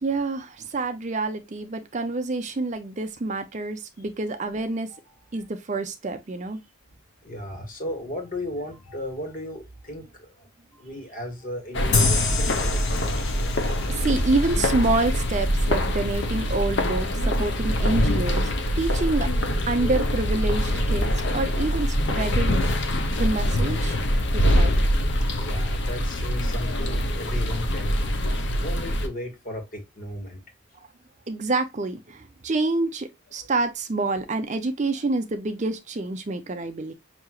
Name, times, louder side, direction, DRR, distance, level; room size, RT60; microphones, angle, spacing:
voice 1, 0.0-4.9 5.3-6.6 13.5-18.5 18.8-19.3 19.7-24.0 24.3-24.7 30.8-30.9 31.3-36.9, right 3 dB, 35° right, 0.5 m, -27 dB
voice 2, 7.2-10.5 10.7-13.4 25.4-28.2 28.6-30.4 33.4-33.5, left 1 dB, 40° left, 1.6 m, -35 dB
sound 1, 11.7-29.1, equal, 55° left, 0.7 m, -24 dB
sound 2, 11.9-15.3, left 5 dB, 80° left, 1.1 m, -30 dB
6.0 x 2.8 x 2.3 m
head